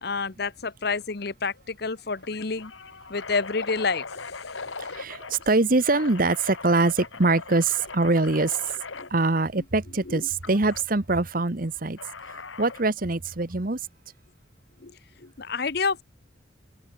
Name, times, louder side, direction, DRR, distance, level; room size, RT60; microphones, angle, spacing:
voice 1, 0.0-2.7 3.1-4.6 9.0-9.1 10.0-10.3 14.8-16.0, left 4 dB, 55° left, 1.0 m, -29 dB
sound 1, 1.0-1.2 1.5-1.6 2.2-5.5 5.9-9.1 10.4-10.8 12.0-12.9, left 4 dB, 90° left, 2.6 m, -39 dB
voice 2, 5.0-8.6 9.1-12.0 12.6-13.8, right 3 dB, 45° right, 1.2 m, -23 dB
open air
head